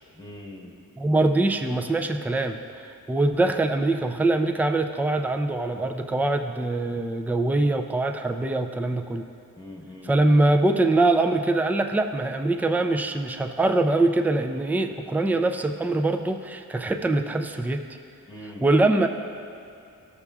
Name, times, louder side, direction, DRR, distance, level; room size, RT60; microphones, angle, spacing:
voice 1, 0.1-0.8 9.6-10.5 18.2-18.7, left 1 dB, 15° left, -3 dB, 1.2 m, -42 dB
voice 2, 1.0-9.2 10.1-17.8 18.6-19.1, right 2 dB, 5° right, 6 dB, 0.4 m, -23 dB
14.0 x 6.7 x 2.4 m, 2.6 s
cardioid pair, 90°, 35 cm